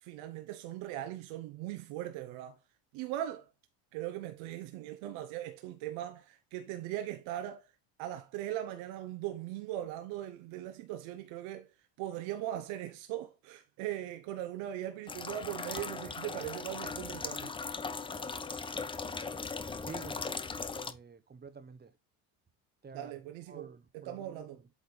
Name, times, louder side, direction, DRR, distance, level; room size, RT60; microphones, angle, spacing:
voice 1, 0.0-2.6 2.9-3.5 3.9-7.6 8.0-11.7 12.0-17.5 22.9-24.6, right 13 dB, 70° right, 1.0 m, -39 dB
sound 1, 15.1-20.9, left 4 dB, 10° left, 0.4 m, -39 dB
voice 2, 19.8-20.4 20.7-21.9 22.8-23.2 23.5-24.7, right 5 dB, 20° right, 0.9 m, -49 dB
8.3 x 3.4 x 4.0 m
supercardioid pair, 95°, 49 cm